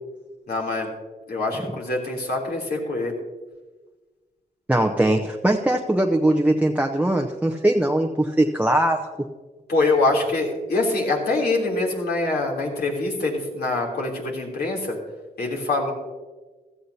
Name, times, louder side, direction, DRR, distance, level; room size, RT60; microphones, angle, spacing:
voice 1, 0.5-0.9 1.3-3.1 9.7-15.0 15.4-15.9, left 2 dB, 65° left, -2 dB, 3.3 m, -24 dB
voice 2, 4.7-9.1, right 1 dB, 10° right, 4 dB, 0.7 m, -21 dB
16.0 x 13.5 x 2.8 m, 1.3 s
cardioid pair, 75°, 18 cm